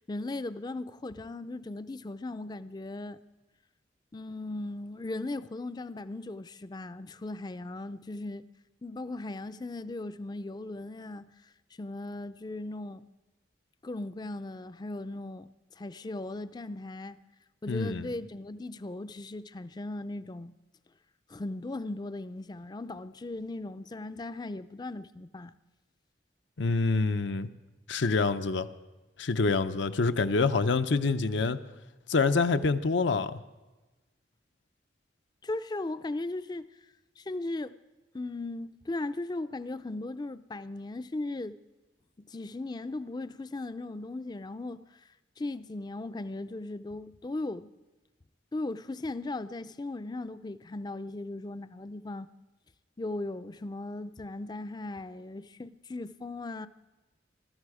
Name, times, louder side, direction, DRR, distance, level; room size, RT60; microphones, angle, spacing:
voice 1, 0.0-3.2 4.1-8.5 8.8-11.5 11.8-13.1 13.8-15.5 15.8-17.2 17.6-20.6 21.3-25.5 35.4-36.7 37.2-37.7 38.1-41.6 42.3-45.1 45.4-47.7 48.5-52.3 53.0-56.7, left 2 dB, 20° left, 0.4 m, -37 dB
voice 2, 17.7-18.1 26.6-27.5 27.9-28.7 29.2-31.6 32.1-33.4, left 4 dB, 85° left, 0.7 m, -26 dB
21.0 x 13.0 x 4.9 m
head